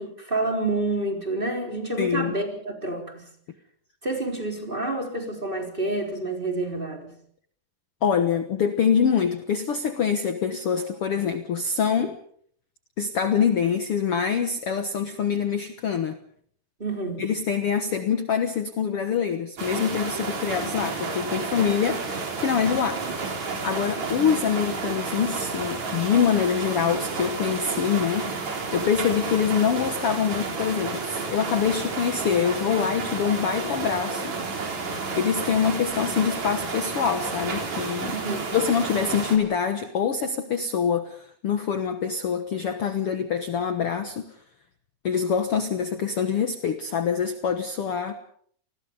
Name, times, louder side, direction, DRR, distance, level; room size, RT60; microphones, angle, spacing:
voice 1, 0.0-3.3 4.0-7.2 16.8-17.3 38.1-38.5, right 2 dB, 15° right, 3 dB, 3.8 m, -28 dB
voice 2, 2.0-2.3 8.0-12.2 13.0-16.2 17.2-23.0 23.6-34.6 35.1-38.1 38.5-44.2 45.0-48.1, left 7 dB, 65° left, 8 dB, 1.4 m, -25 dB
sound 1, 19.6-39.4, right 4 dB, 45° right, 4.7 m, -31 dB
29.0 x 20.5 x 5.4 m, 0.62 s
omnidirectional pair, 4.4 m